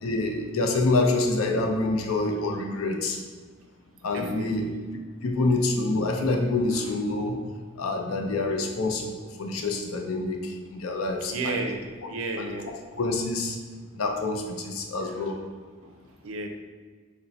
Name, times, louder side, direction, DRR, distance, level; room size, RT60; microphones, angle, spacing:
voice 1, 0.0-3.2 4.0-4.7 5.2-7.4 7.8-11.5 12.4-12.5 13.0-13.6 13.9-15.4, left 2 dB, 90° left, 3 dB, 0.5 m, -26 dB
voice 2, 4.1-4.7 6.7-6.9 11.3-12.7 15.0-15.4 15.8-15.9 16.2-16.5, right 3 dB, 80° right, 4 dB, 0.4 m, -34 dB
4.1 x 2.1 x 3.9 m, 1.5 s
head